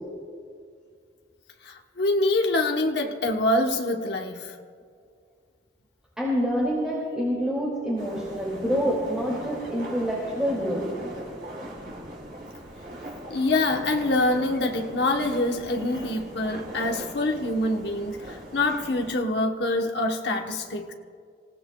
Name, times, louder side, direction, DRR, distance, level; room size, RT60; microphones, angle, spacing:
voice 1, 1.6-4.5 13.3-20.9, left 2 dB, 65° left, 3 dB, 1.0 m, -25 dB
voice 2, 6.2-10.9, equal, 5° right, -6 dB, 2.3 m, -27 dB
sound 1, 8.0-19.1, right 1 dB, 50° right, 3.6 m, -40 dB
26.5 x 16.0 x 2.3 m, 2.2 s
head